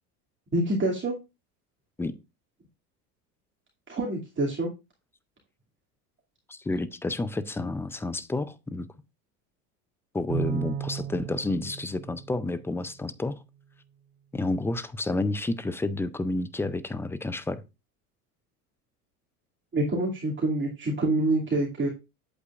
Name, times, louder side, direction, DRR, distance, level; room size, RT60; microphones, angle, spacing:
voice 1, 0.5-1.2 3.9-4.7 19.7-21.9, right 2 dB, 25° right, 2.5 m, -26 dB
voice 2, 6.5-8.9 10.1-13.4 14.3-17.6, left 2 dB, 5° left, 0.4 m, -30 dB
Bowed string instrument, 10.3-12.9, right 8 dB, 60° right, 2.2 m, -34 dB
8.4 x 7.9 x 2.4 m
hypercardioid pair, 90°, 48 cm